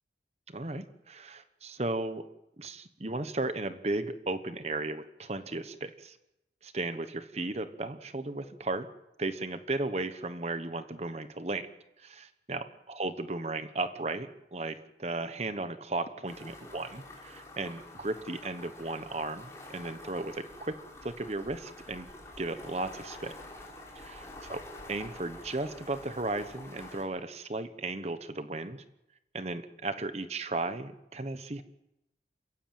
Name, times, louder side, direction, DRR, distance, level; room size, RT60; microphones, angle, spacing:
voice 1, 0.5-2.2 2.6-6.2 6.6-8.9 9.2-11.7 12.0-20.8 21.0-22.1 22.4-23.4 23.9-24.2 24.5-24.6 24.9-28.8 29.3-31.6, right 2 dB, 35° right, 11 dB, 1.0 m, -35 dB
sound 1, 16.3-27.0, left 2 dB, 15° left, 4.8 m, -48 dB
27.5 x 15.0 x 9.0 m, 0.92 s
head